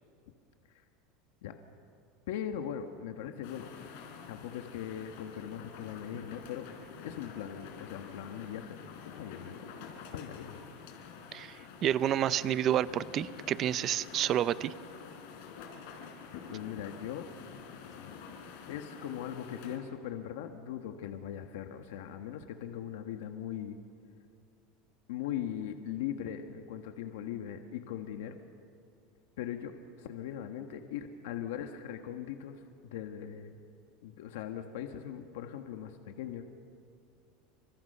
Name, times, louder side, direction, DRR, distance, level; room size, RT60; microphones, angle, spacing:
voice 1, 2.3-3.7 4.3-6.7 7.0-8.8 9.0-9.6 10.1-10.6 16.5-17.3 18.7-23.8 25.1-28.4 29.4-33.6 34.0-36.4, left 10 dB, 80° left, 5 dB, 1.5 m, -40 dB
sound 1, 3.4-19.8, left 6 dB, 60° left, 3.7 m, -48 dB
voice 2, 11.3-14.7, right 11 dB, 25° right, 16 dB, 0.5 m, -29 dB
28.0 x 26.0 x 5.6 m, 2.4 s
supercardioid pair, 180°, 0 cm